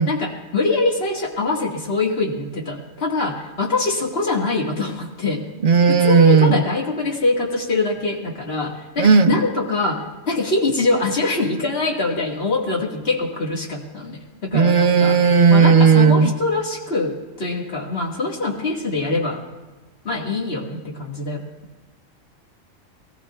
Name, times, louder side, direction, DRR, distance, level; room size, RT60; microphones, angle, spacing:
voice 1, 0.1-5.4 5.9-15.2 15.5-19.4 20.0-21.5, left 3 dB, 50° left, -2 dB, 2.1 m, -23 dB
voice 2, 5.6-6.5 9.0-9.3 14.5-16.3, right 5 dB, 45° right, 5 dB, 0.8 m, -14 dB
22.5 x 18.5 x 2.4 m, 1.2 s
omnidirectional pair, 1.4 m